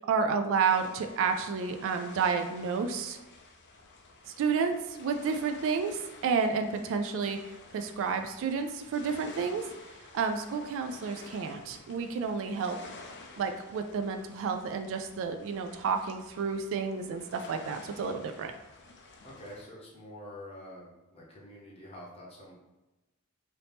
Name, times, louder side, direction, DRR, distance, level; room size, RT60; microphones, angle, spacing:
voice 1, 0.1-3.2 4.4-7.4 7.7-9.6 10.1-12.8 13.4-18.5, right 5 dB, 60° right, 7 dB, 0.3 m, -30 dB
sound 1, 0.6-19.6, left 3 dB, 55° left, 0.5 m, -51 dB
voice 2, 19.2-22.5, left 1 dB, 25° left, -4 dB, 0.9 m, -47 dB
2.8 x 2.7 x 3.4 m, 1.0 s
head